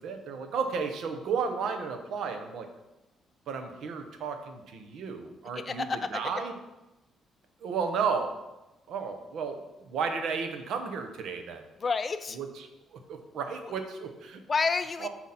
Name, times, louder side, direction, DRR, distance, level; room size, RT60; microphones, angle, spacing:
voice 1, 0.0-2.7 3.5-6.5 7.6-8.3 8.9-11.6 12.3-14.4 15.0-15.1, right 5 dB, 75° right, 6 dB, 0.8 m, -33 dB
voice 2, 5.6-6.2 11.8-12.4 13.6-13.7 14.5-15.1, left 4 dB, 40° left, 12 dB, 0.4 m, -29 dB
7.5 x 3.0 x 5.6 m, 0.99 s
cardioid pair, 90°, 0 cm